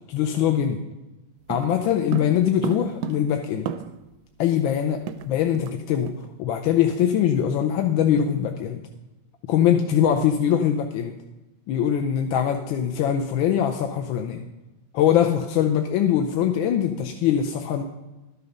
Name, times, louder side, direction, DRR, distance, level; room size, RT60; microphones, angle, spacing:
voice 1, 0.1-0.8 1.5-3.7 4.4-5.0 5.3-8.8 9.5-11.2 11.7-14.4 14.9-17.8, left 9 dB, 80° left, 4 dB, 1.4 m, -22 dB
sound 1, 1.5-4.2 4.4-4.5 4.8-5.8 6.1-6.3 6.6-6.9, right 7 dB, 75° right, 1.0 m, -34 dB
12.5 x 6.8 x 5.2 m, 1.1 s
omnidirectional pair, 2.2 m